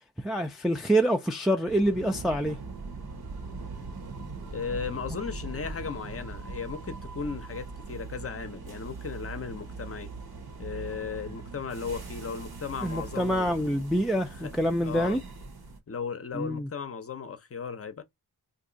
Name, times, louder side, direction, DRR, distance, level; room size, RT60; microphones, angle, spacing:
voice 1, 0.2-2.6 12.8-15.2 16.3-16.7, right 1 dB, ahead, 0.3 m, -26 dB
sound 1, 1.7-15.8, right 3 dB, 60° right, 1.1 m, -41 dB
voice 2, 4.5-10.1 10.6-13.5 14.3-14.5 14.8-15.2 15.9-18.0, left 6 dB, 35° left, 0.6 m, -36 dB
2.6 x 2.3 x 3.8 m
cardioid pair, 85°, 41 cm